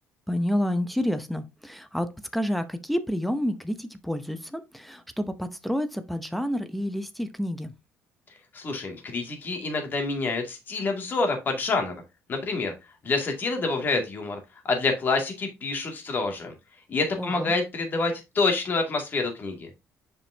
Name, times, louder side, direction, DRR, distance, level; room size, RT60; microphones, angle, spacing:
voice 1, 0.3-7.7 17.2-17.5, equal, ahead, 0.7 m, -29 dB
voice 2, 8.5-11.9 12.3-12.7 13.0-14.4 14.6-16.5 16.9-19.7, left 3 dB, 40° left, 2.2 m, -27 dB
7.2 x 5.2 x 2.7 m
cardioid pair, 105°, 5 cm